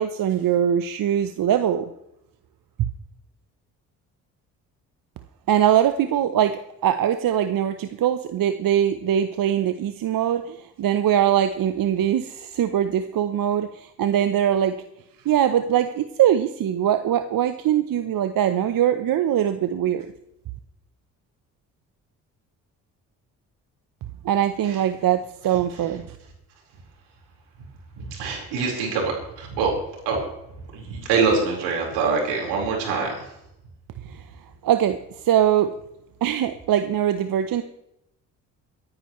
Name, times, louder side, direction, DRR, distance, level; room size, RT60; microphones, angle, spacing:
voice 1, 0.0-1.9 5.5-14.7 15.2-20.1 24.2-26.2 34.1-34.2 34.6-35.7 36.2-37.6, right 10 dB, 55° right, 10 dB, 0.9 m, -22 dB
voice 2, 28.0-29.7 30.0-30.2 30.7-33.3, right 4 dB, 80° right, -1 dB, 4.6 m, -24 dB
23.5 x 10.0 x 3.2 m, 0.83 s
hypercardioid pair, 55°, 40 cm